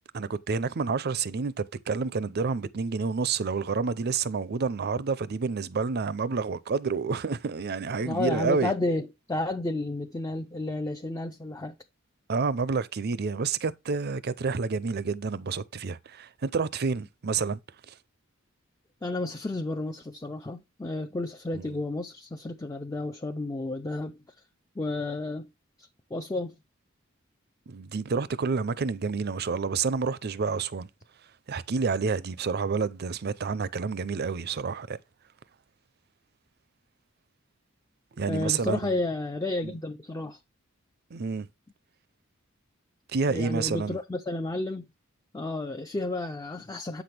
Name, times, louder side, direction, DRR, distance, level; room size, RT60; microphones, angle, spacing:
voice 1, 0.1-8.7 12.3-17.6 17.9-18.0 21.5-21.8 27.7-30.9 31.5-35.0 38.1-38.9 39.6-39.7 41.1-41.5 43.1-44.0, right 4 dB, 55° right, 0.6 m, -29 dB
voice 2, 8.1-11.7 19.0-24.2 24.8-25.5 25.8-26.5 38.3-40.4 43.3-44.9 45.3-47.0, left 2 dB, 15° left, 0.5 m, -32 dB
8.3 x 6.0 x 3.4 m
head